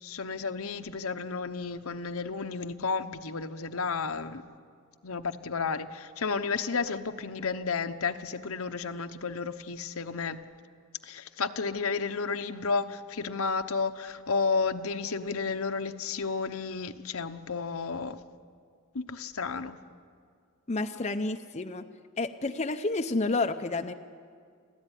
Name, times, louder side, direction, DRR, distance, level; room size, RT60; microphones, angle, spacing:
voice 1, 0.0-4.4 5.0-10.4 11.0-18.2 18.9-19.8, left 4 dB, 70° left, 9 dB, 1.0 m, -32 dB
voice 2, 20.7-21.8 22.2-23.9, left 3 dB, 30° left, 6 dB, 0.6 m, -30 dB
25.5 x 15.5 x 10.0 m, 2.1 s
head